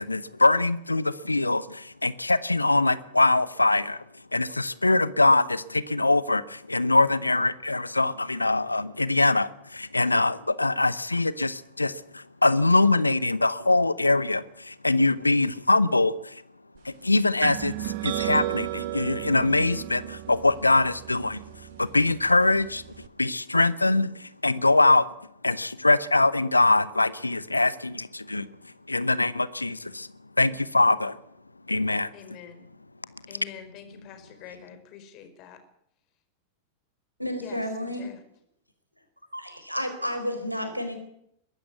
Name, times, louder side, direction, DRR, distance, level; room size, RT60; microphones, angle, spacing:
voice 1, 0.0-4.0 4.3-16.4 16.8-21.4 21.8-22.8 23.2-25.1 25.4-28.5 28.9-30.1 30.4-31.2 31.7-32.1, left 2 dB, 80° left, 18 dB, 0.9 m, -23 dB
sound 1, 17.4-23.1, right 15 dB, 50° right, 1.2 m, -34 dB
voice 2, 32.1-32.7 33.3-35.6 37.4-38.2, left 8 dB, 40° left, 8 dB, 4.7 m, -46 dB
voice 3, 37.2-38.1 39.3-41.0, equal, 90° right, 8 dB, 4.2 m, -31 dB
22.5 x 13.5 x 9.4 m, 0.74 s
figure-of-eight pair, 90°, 0 cm